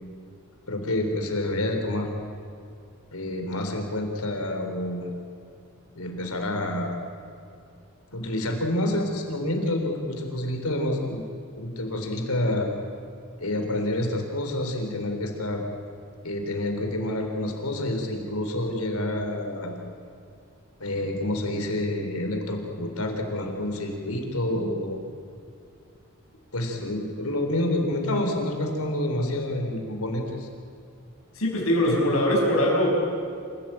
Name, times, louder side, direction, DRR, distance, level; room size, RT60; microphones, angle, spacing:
voice 1, 0.7-2.1 3.1-5.1 5.9-6.9 8.1-11.2 11.6-12.7 13.4-15.6 16.2-19.7 20.8-25.0 26.5-30.5, left 1 dB, 90° left, 3 dB, 3.7 m, -28 dB
voice 2, 31.4-32.9, left 1 dB, 70° left, -1 dB, 6.4 m, -22 dB
27.5 x 16.5 x 8.9 m, 2.5 s
head